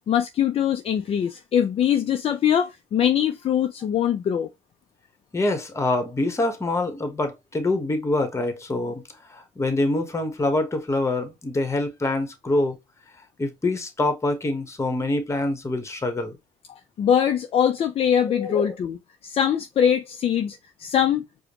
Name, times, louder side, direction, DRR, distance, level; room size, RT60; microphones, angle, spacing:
voice 1, 0.1-4.5 17.0-19.0 19.2-21.2, left 9 dB, 40° left, 0.5 m, -22 dB
voice 2, 5.3-9.0 9.3-12.8 13.4-16.4 18.3-18.7, left 2 dB, 20° left, 1.1 m, -25 dB
4.9 x 2.2 x 2.9 m
hypercardioid pair, 70°, 15 cm